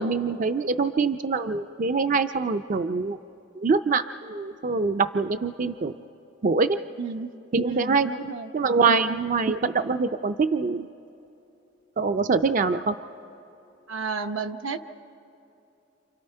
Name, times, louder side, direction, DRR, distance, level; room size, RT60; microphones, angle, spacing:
voice 1, 0.0-3.2 3.6-5.9 6.4-6.8 7.5-8.1 8.5-10.9 12.0-12.9, right 4 dB, 40° right, 9 dB, 0.4 m, -24 dB
voice 2, 7.0-7.3 7.6-8.5 8.9-9.2 13.9-14.8, right 4 dB, 90° right, 6 dB, 0.9 m, -32 dB
28.0 x 28.0 x 4.4 m, 2.9 s
head